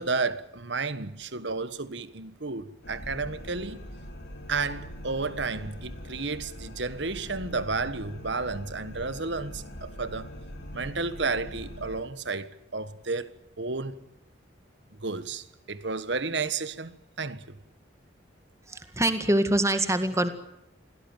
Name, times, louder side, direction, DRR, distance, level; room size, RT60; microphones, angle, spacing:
voice 1, 0.0-3.8 4.5-10.3 10.7-13.9 15.0-17.5, right 4 dB, 65° right, 1.4 m, -32 dB
sound 1, 2.8-12.0, equal, 60° left, 4.9 m, -42 dB
voice 2, 18.7-20.3, right 1 dB, 15° right, 1.9 m, -24 dB
26.5 x 17.5 x 9.1 m
head